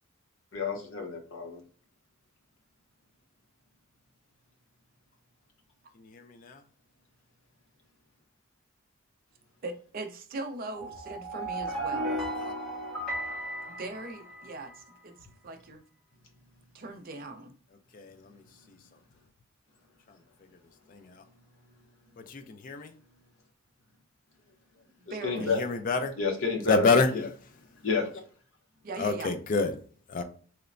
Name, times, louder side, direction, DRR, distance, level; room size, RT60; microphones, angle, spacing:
voice 1, 0.5-1.6 25.2-25.6 26.2-27.2 27.8-28.1, left 4 dB, 65° left, 0.8 m, -30 dB
voice 2, 6.0-6.6 12.1-12.5 17.9-18.4 20.9-21.2 22.2-22.9 25.4-26.2 26.7-27.3 29.0-29.7 30.1-30.2, left 4 dB, 40° left, 0.3 m, -28 dB
voice 3, 9.6-12.1 13.7-15.2 15.4-15.8 16.7-17.5 25.1-25.5 28.8-29.3, right 2 dB, 40° right, 0.4 m, -40 dB
sound 1, 10.7-14.7, right 1 dB, ahead, 0.7 m, -35 dB
3.0 x 2.0 x 2.4 m
head